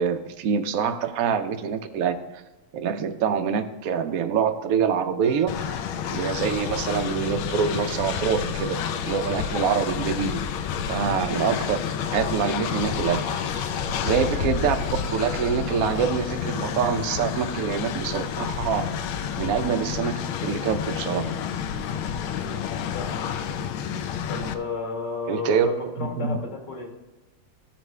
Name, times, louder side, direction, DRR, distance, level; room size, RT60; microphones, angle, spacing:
voice 1, 0.0-2.2 2.7-5.5 6.1-8.8 9.0-10.4 10.9-11.8 12.1-13.2 14.0-14.8 15.1-18.9 19.4-21.3 25.3-25.7 26.0-26.3, right 7 dB, 75° right, 7 dB, 0.8 m, -25 dB
sound 1, 5.2-6.2 7.6-10.2 11.5-16.0 17.3-17.4, right 3 dB, 50° right, 0.9 m, -46 dB
Train, 5.5-24.5, left 7 dB, 80° left, 1.4 m, -29 dB
voice 2, 24.3-26.9, left 4 dB, 55° left, 0 dB, 2.1 m, -33 dB
14.0 x 5.9 x 3.2 m, 1.1 s
omnidirectional pair, 2.3 m